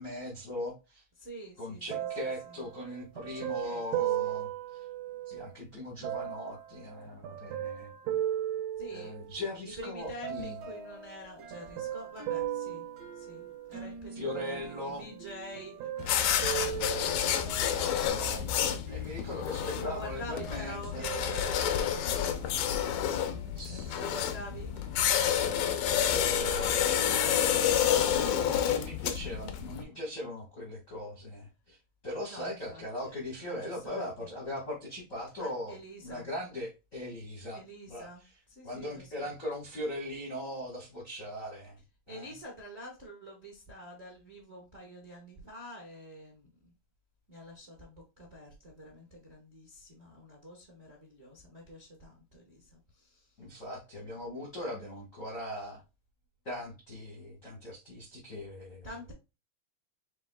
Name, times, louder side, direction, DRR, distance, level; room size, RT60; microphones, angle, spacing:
voice 1, 0.0-1.0 1.6-4.8 5.2-7.9 8.9-10.6 14.1-15.0 17.6-18.4 18.9-21.1 23.5-24.0 25.9-35.7 36.0-37.6 37.9-38.4 38.6-41.8 42.1-42.3 53.4-55.8 56.4-58.9, left 1 dB, 55° left, 0.8 m, -39 dB
voice 2, 1.2-2.1 3.3-4.5 8.8-9.1 9.6-12.8 13.1-15.9 16.5-16.9 17.4-18.4 19.7-22.3 24.0-24.7 26.2-28.8 29.2-29.7 32.3-34.0 35.4-36.3 37.5-39.3 42.1-46.7 47.3-53.3 58.8-59.1, equal, 40° right, 0.9 m, -47 dB
sound 1, 1.9-5.5 6.0-9.5 10.2-10.9 11.5-13.8 14.3-15.3 15.5-17.6 18.3-18.4, right 12 dB, 80° right, 1.8 m, -37 dB
sound 2, 10.0-28.9, right 2 dB, 60° right, 1.9 m, -48 dB
sound 3, 16.0-29.8, left 9 dB, 80° left, 1.6 m, -29 dB
6.8 x 3.4 x 2.2 m
omnidirectional pair, 3.9 m